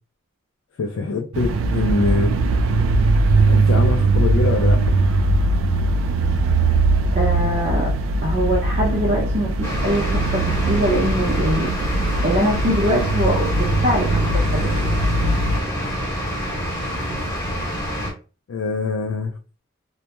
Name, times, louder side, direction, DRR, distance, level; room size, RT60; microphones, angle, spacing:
voice 1, 0.8-2.3 3.4-4.8 18.5-19.3, left 3 dB, 75° left, 0.4 m, -23 dB
sound 1, 1.3-15.6, right 2 dB, 75° right, 0.3 m, -20 dB
voice 2, 7.1-7.9 8.2-11.7 12.2-14.7, equal, 35° right, 0.7 m, -23 dB
sound 2, 9.6-18.1, equal, 10° left, 0.9 m, -27 dB
2.2 x 2.1 x 2.9 m
head